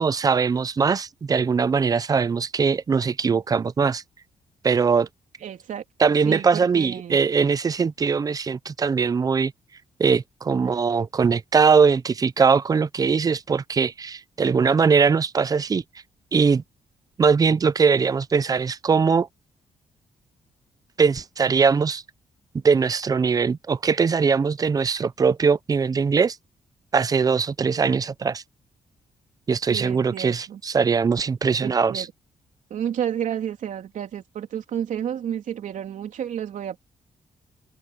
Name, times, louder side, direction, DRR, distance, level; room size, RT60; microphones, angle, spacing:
voice 1, 0.0-4.0 4.6-5.1 6.0-9.5 10.0-15.8 16.3-16.6 17.2-19.3 21.0-22.0 22.6-26.4 26.9-28.4 29.5-32.1, right 5 dB, 25° right, 0.5 m, -21 dB
voice 2, 5.4-7.2 29.7-30.6 31.6-32.1 32.7-36.8, right 9 dB, 70° right, 3.3 m, -31 dB
open air
wide cardioid pair, 150°, 14 cm